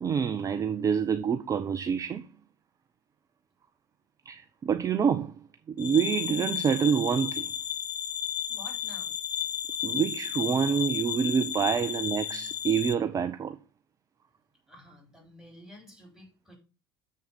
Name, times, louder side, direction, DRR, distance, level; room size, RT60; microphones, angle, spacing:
voice 1, 0.0-2.3 4.3-5.3 5.7-7.5 9.8-13.6, right 7 dB, 25° right, 0.6 m, -27 dB
sound 1, 5.8-12.9, left 9 dB, 35° left, 0.8 m, -33 dB
voice 2, 8.5-9.2 14.7-16.6, left 1 dB, ahead, 5.1 m, -51 dB
7.0 x 6.5 x 5.2 m
figure-of-eight pair, 65°, 12 cm